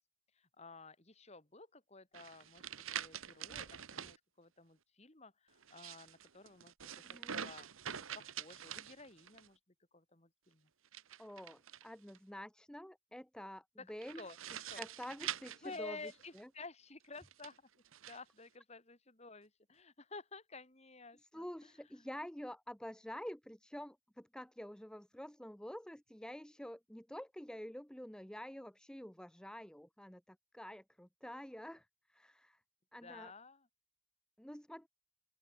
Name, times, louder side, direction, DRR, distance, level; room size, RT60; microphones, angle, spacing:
voice 1, 0.4-2.6 2.9-7.7 8.0-9.6 9.9-10.7 13.8-13.9 14.2-14.4 14.7-14.8 15.6-17.6 18.1-21.7 22.0-22.1 33.0-33.7, left 3 dB, 30° left, 2.5 m, -52 dB
sound 1, 2.1-4.2 5.6-9.5 10.8-12.2 14.0-16.4 17.2-18.2, right 9 dB, 75° right, 1.2 m, -46 dB
voice 2, 7.0-7.4 11.2-14.3 14.8-16.5 21.1-32.6 32.9-33.3 34.4-34.9, equal, 5° left, 0.7 m, -48 dB
open air
head